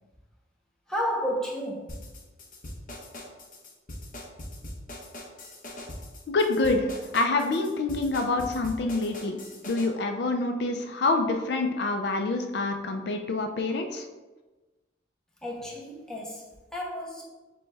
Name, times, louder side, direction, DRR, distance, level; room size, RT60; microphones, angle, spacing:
voice 1, 0.9-2.0 15.4-17.2, equal, 5° left, -3 dB, 0.6 m, -32 dB
sound 1, 1.9-9.9, left 1 dB, 45° left, 0.8 m, -41 dB
voice 2, 6.3-9.4 9.7-14.0, left 3 dB, 65° left, 4 dB, 0.4 m, -27 dB
6.8 x 2.3 x 3.2 m, 1.2 s
head